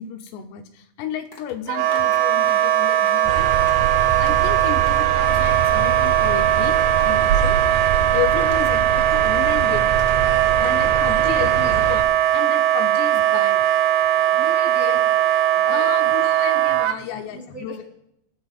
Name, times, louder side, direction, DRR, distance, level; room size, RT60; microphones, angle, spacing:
voice 1, 0.0-3.5 4.1-7.6 8.1-10.0 10.6-12.0 12.3-13.6 14.9-15.0 15.7-17.8, left 9 dB, 80° left, 6 dB, 3.0 m, -32 dB
sound 1, 1.0-4.5 4.7-10.7 11.0-11.2, left 3 dB, 50° left, 1.1 m, -44 dB
Wind instrument woodwind instrument, 1.7-17.0, right 12 dB, 90° right, 2.9 m, -19 dB
sound 2, 3.2-12.0, right 7 dB, 75° right, 1.8 m, -26 dB
voice 2, 10.7-12.1 14.1-15.9 17.3-17.8, equal, 5° right, -2 dB, 2.8 m, -38 dB
24.0 x 14.0 x 2.4 m, 0.77 s
omnidirectional pair, 4.9 m